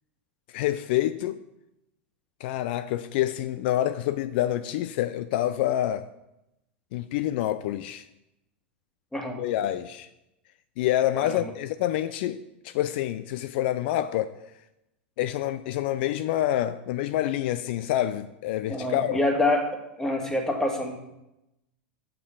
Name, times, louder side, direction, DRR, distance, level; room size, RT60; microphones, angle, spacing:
voice 1, 0.5-1.4 2.4-6.1 6.9-8.0 9.4-10.1 10.8-14.3 15.2-19.2, left 13 dB, 60° left, 12 dB, 0.4 m, -27 dB
voice 2, 9.1-9.4 11.2-11.5 18.7-19.6 20.0-21.0, left 2 dB, 10° left, 2 dB, 1.8 m, -26 dB
6.4 x 5.5 x 7.0 m, 0.90 s
hypercardioid pair, 105°, 6 cm